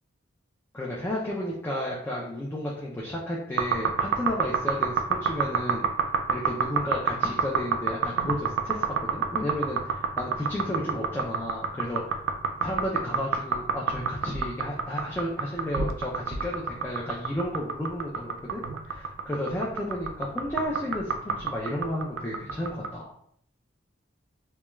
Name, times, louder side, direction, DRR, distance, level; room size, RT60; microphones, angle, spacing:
voice 1, 0.7-5.9 6.3-12.2 12.6-23.1, left 1 dB, 10° left, -4 dB, 0.3 m, -32 dB
sound 1, 3.6-22.9, right 5 dB, 85° right, 0.3 m, -27 dB
2.2 x 2.2 x 3.0 m, 0.68 s
head